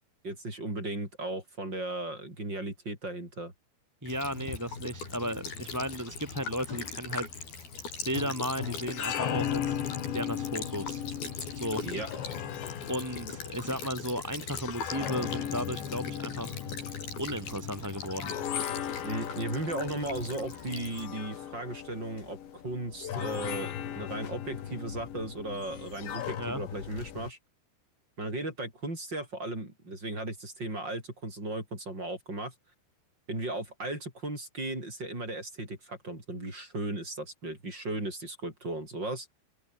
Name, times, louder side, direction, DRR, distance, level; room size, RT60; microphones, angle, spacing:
voice 1, 0.2-3.5 11.8-12.1 19.0-27.4 28.2-32.5 33.3-39.3, right 2 dB, 25° right, 8.4 m, -36 dB
voice 2, 4.0-7.3 8.1-9.8 10.1-11.0 11.5-12.1 12.9-16.6 17.2-18.3 26.4-26.6, equal, 5° right, 3.8 m, -35 dB
Child speech kid speaking / Bird vocalization bird call bird song / Stream, 4.1-21.1, left 4 dB, 55° left, 8.6 m, -40 dB
sound 1, 8.7-27.3, left 10 dB, 80° left, 4.9 m, -37 dB
omnidirectional pair, 5.1 m